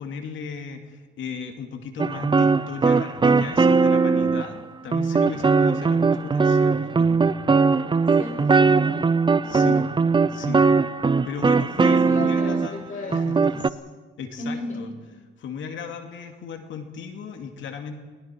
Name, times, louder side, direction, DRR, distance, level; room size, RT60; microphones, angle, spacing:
voice 1, 0.0-7.3 9.4-9.9 10.3-10.6 11.2-13.7 14.2-14.9 15.4-17.9, left 6 dB, 75° left, 5 dB, 2.6 m, -36 dB
sound 1, 2.0-4.6 4.9-12.7 13.1-13.7, right 4 dB, 25° right, 0.7 m, -20 dB
voice 2, 7.8-9.2 11.8-13.4 14.4-15.1, left 2 dB, 40° left, 1 dB, 6.9 m, -36 dB
30.0 x 20.5 x 4.7 m, 1.4 s
cardioid pair, 90°, 20 cm